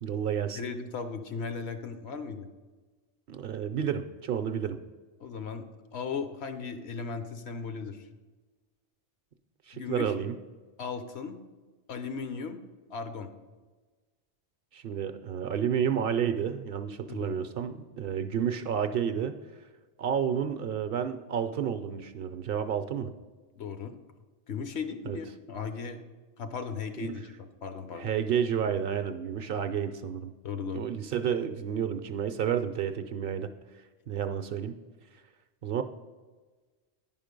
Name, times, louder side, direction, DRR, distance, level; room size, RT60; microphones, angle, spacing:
voice 1, 0.0-0.6 3.3-4.8 9.7-10.3 14.7-19.3 20.0-23.1 25.1-25.2 28.0-30.3 30.7-33.5 34.1-34.8 35.6-35.8, right 8 dB, 60° right, 9 dB, 0.7 m, -30 dB
voice 2, 0.5-2.5 5.2-5.6 5.9-8.1 9.7-10.1 10.8-11.4 11.9-12.6 12.9-13.3 17.1-17.5 23.6-23.9 24.5-26.0 26.4-28.1 30.4-30.9, left 5 dB, 70° left, 8 dB, 1.0 m, -36 dB
9.9 x 5.5 x 5.2 m, 1.3 s
omnidirectional pair, 1.1 m